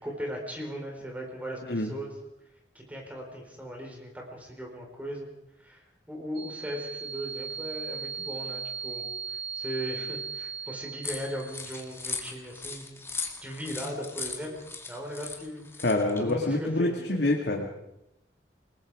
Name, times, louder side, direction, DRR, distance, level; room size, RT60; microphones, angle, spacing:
voice 1, 0.0-2.1 2.7-5.3 5.6-14.6 14.9-15.8 16.2-17.3, equal, 10° right, 1 dB, 4.5 m, -38 dB
voice 2, 1.6-1.9 15.8-17.7, left 2 dB, 75° left, 1 dB, 2.2 m, -26 dB
sound 1, 6.3-12.0, right 5 dB, 35° right, 1.1 m, -38 dB
sound 2, 11.0-16.3, left 4 dB, 15° left, 2.1 m, -38 dB
28.5 x 20.0 x 5.0 m, 0.86 s
head